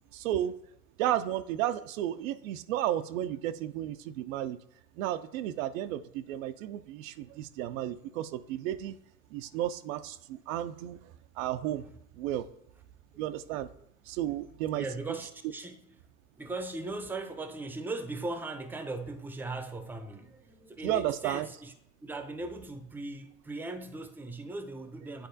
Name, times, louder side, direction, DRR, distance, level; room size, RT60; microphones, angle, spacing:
voice 1, 0.1-0.6 1.0-4.6 5.0-9.0 9.3-11.9 12.2-12.5 13.2-13.7 14.1-14.8 20.8-21.5, right 12 dB, 80° right, 0.5 m, -33 dB
voice 2, 14.7-16.0 16.4-21.7 22.0-25.3, right 2 dB, 5° right, 0.6 m, -39 dB
9.1 x 4.1 x 2.7 m
hypercardioid pair, 80°, 40 cm